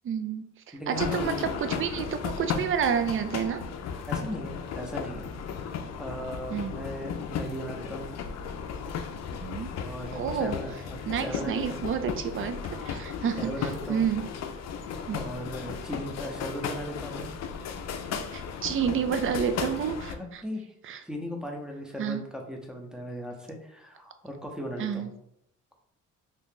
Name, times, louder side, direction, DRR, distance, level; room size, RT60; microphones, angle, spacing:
voice 1, 0.0-3.6 6.5-6.8 9.4-9.7 10.1-10.6 11.1-14.3 15.1-15.2 18.3-20.4 20.8-21.0 22.0-22.2 24.8-25.1, right 7 dB, 45° right, 9 dB, 0.4 m, -30 dB
voice 2, 0.7-1.5 4.1-5.3 6.0-8.1 9.8-11.6 13.4-14.1 15.1-17.3 20.1-20.6 21.0-25.1, equal, ahead, 1 dB, 0.6 m, -37 dB
sound 1, 0.9-20.1, left 6 dB, 60° left, 0.5 m, -35 dB
2.8 x 2.5 x 3.6 m, 0.76 s
cardioid pair, 90°, 30 cm